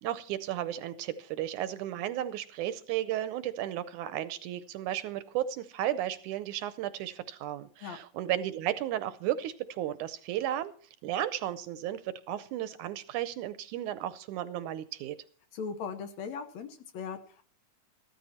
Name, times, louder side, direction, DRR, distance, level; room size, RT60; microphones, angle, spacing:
voice 1, 0.0-10.7 11.0-15.2, right 12 dB, 75° right, 14 dB, 2.0 m, -34 dB
voice 2, 15.5-17.5, left 6 dB, 65° left, 9 dB, 2.0 m, -39 dB
14.5 x 13.0 x 4.3 m, 0.43 s
omnidirectional pair, 3.8 m